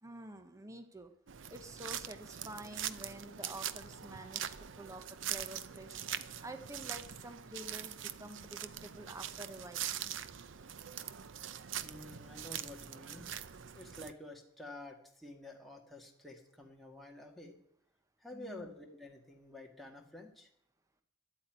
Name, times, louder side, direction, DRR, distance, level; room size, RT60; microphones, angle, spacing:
voice 1, 0.0-1.1 1.5-6.0 6.4-9.9 18.3-18.7, right 1 dB, 15° right, 7 dB, 0.9 m, -49 dB
sound 1, 1.3-14.1, right 10 dB, 75° right, 0.6 m, -43 dB
voice 2, 11.8-13.3 13.7-17.5 18.2-20.5, left 1 dB, ahead, -1 dB, 2.0 m, -50 dB
11.5 x 8.6 x 9.3 m, 0.73 s
head